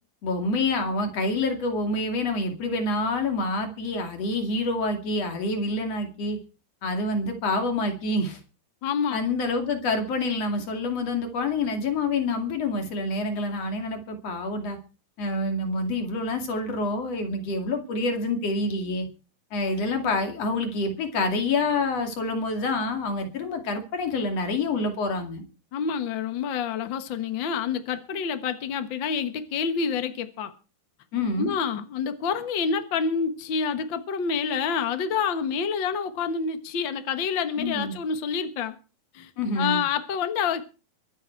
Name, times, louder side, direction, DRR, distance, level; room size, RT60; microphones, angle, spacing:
voice 1, 0.2-6.4 6.8-8.4 9.1-14.8 15.2-19.1 19.5-25.4 31.1-31.5 37.6-38.0 39.4-39.8, left 2 dB, 45° left, 3.3 m, -27 dB
voice 2, 8.8-9.2 25.7-30.5 31.4-38.7 39.1-39.3 39.6-40.7, left 6 dB, 65° left, 1.2 m, -28 dB
24.0 x 8.8 x 4.6 m
omnidirectional pair, 4.3 m